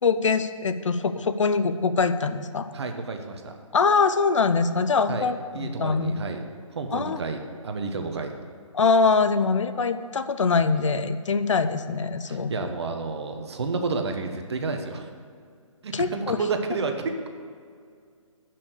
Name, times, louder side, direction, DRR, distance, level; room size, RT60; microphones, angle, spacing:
voice 1, 0.0-2.7 3.7-6.2 6.9-7.2 8.7-12.5 15.9-16.4, left 4 dB, 65° left, 10 dB, 0.7 m, -23 dB
voice 2, 2.7-3.6 5.1-5.3 5.5-6.4 6.7-8.3 12.2-15.1 15.8-17.3, right 4 dB, 50° right, 5 dB, 1.2 m, -30 dB
9.7 x 6.0 x 8.2 m, 2.2 s
figure-of-eight pair, 150°, 17 cm